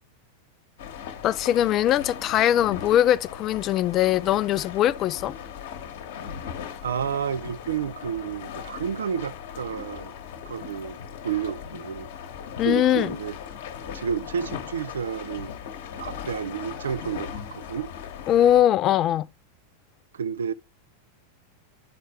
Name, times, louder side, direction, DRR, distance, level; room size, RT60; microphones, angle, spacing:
sound 1, 0.8-18.6, left 8 dB, 55° left, 1.1 m, -38 dB
voice 1, 1.2-5.3 12.6-13.1 18.3-19.3, left 11 dB, 35° left, 0.3 m, -21 dB
voice 2, 6.8-10.1 10.5-11.0 11.2-12.1 12.6-13.3 13.9-15.5 16.0-17.9 20.1-20.5, right 7 dB, 65° right, 0.4 m, -30 dB
7.6 x 4.3 x 3.2 m
figure-of-eight pair, 90°, 0 cm